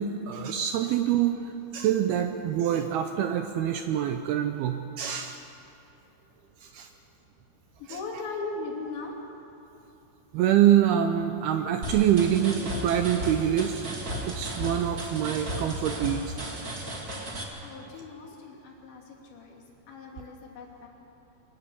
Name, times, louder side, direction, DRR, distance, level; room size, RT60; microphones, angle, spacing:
voice 1, 0.0-5.4 6.6-6.9 7.9-8.0 10.3-13.8 14.2-16.3, right 10 dB, 80° right, 6 dB, 2.3 m, -25 dB
voice 2, 7.8-9.2 17.6-20.9, left 3 dB, 75° left, -1 dB, 5.0 m, -39 dB
sound 1, 11.8-17.4, right 1 dB, 30° right, 1.7 m, -35 dB
24.0 x 19.0 x 7.0 m, 2.9 s
omnidirectional pair, 5.2 m